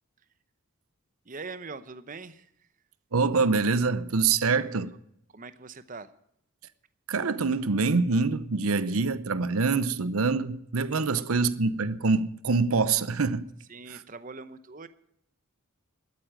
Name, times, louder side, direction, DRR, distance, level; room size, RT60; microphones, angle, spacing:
voice 1, 1.3-2.5 4.6-4.7 5.3-6.1 11.1-11.4 13.7-14.9, right 4 dB, 40° right, 0.8 m, -42 dB
voice 2, 3.1-4.9 7.1-13.5 13.9-14.0, right 4 dB, 85° right, 0.8 m, -25 dB
13.0 x 9.3 x 8.9 m
head